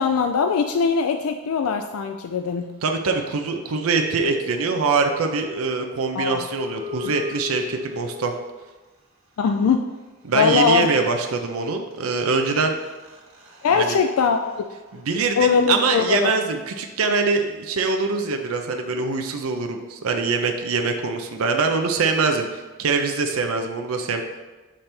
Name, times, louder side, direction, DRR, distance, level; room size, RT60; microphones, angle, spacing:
voice 1, 0.0-2.6 6.1-6.4 7.0-7.1 9.4-9.8 10.3-10.9 13.6-14.7 15.4-16.3, left 5 dB, 80° left, 6 dB, 0.4 m, -21 dB
voice 2, 2.8-8.3 10.2-12.8 13.7-14.0 14.9-24.2, right 4 dB, 85° right, 4 dB, 0.5 m, -23 dB
sound 1, 3.4-8.7 10.6-10.7 10.9-16.4, left 3 dB, 70° right, 1.5 m, -40 dB
7.4 x 3.3 x 4.3 m, 1.2 s
head